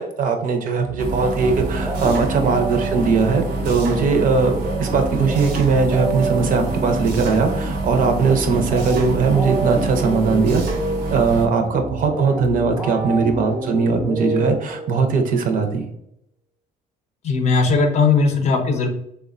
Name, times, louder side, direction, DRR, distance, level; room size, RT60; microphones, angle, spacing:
voice 1, 0.0-10.6 11.1-15.9, right 4 dB, 55° right, 5 dB, 0.5 m, -20 dB
sound 1, 0.8-15.1, right 2 dB, 5° right, 0.5 m, -28 dB
sound 2, 1.0-11.5, right 2 dB, 90° right, 0.7 m, -27 dB
voice 2, 17.2-18.9, left 4 dB, 40° left, 4 dB, 0.5 m, -18 dB
3.3 x 2.1 x 2.4 m, 0.76 s
cardioid pair, 110°, 17 cm